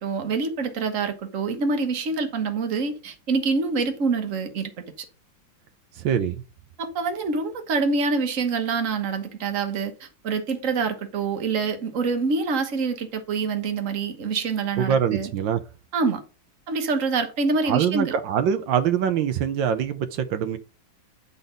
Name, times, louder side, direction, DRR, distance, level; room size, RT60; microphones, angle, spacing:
voice 1, 0.0-4.7 5.0-5.1 6.8-15.3 15.9-16.2 16.7-18.1, right 4 dB, 45° right, 1.6 m, -26 dB
voice 2, 6.0-6.4 14.8-15.6 17.7-20.6, right 8 dB, 80° right, 1.5 m, -24 dB
10.0 x 4.2 x 5.1 m
omnidirectional pair, 2.0 m